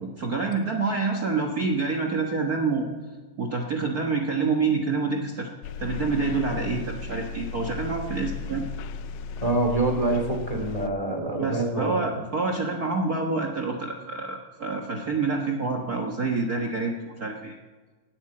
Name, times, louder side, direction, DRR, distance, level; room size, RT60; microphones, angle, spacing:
voice 1, 0.0-2.9 3.4-5.5 5.8-8.6 11.4-17.6, right 4 dB, 85° right, 1 dB, 0.8 m, -27 dB
sound 1, 5.6-10.9, left 5 dB, 80° left, 1.6 m, -35 dB
voice 2, 9.4-12.2, right 2 dB, 15° left, 4 dB, 1.5 m, -26 dB
18.0 x 8.0 x 8.8 m, 1.4 s
omnidirectional pair, 3.9 m